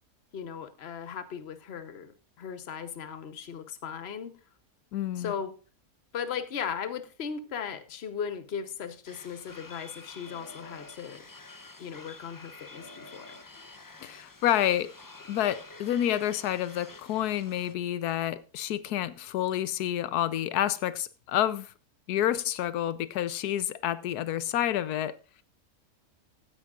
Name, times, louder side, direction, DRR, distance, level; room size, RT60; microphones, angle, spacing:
voice 1, 0.3-4.3 5.1-5.5 6.1-11.2 11.8-13.4, left 7 dB, 45° left, 1.2 m, -37 dB
voice 2, 4.9-5.3 14.0-14.9 15.3-21.7 22.1-25.1, left 12 dB, 90° left, 1.2 m, -29 dB
sound 1, 9.0-17.7, left 3 dB, 30° left, 0.3 m, -48 dB
16.0 x 9.9 x 2.5 m
omnidirectional pair, 1.6 m